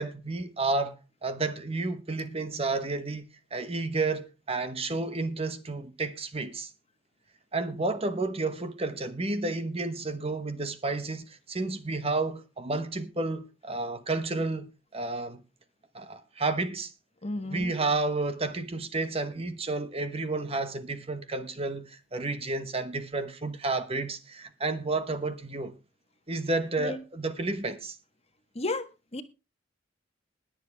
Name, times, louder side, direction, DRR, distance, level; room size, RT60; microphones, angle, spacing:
voice 1, 0.0-3.2 3.5-6.7 7.5-15.4 15.9-16.9 17.4-25.8 26.3-28.0, right 3 dB, 30° right, 1.1 m, -31 dB
voice 2, 17.2-17.7 26.8-27.0 28.5-28.9 29.1-29.2, left 2 dB, 35° left, 1.4 m, -32 dB
21.0 x 7.4 x 3.5 m
head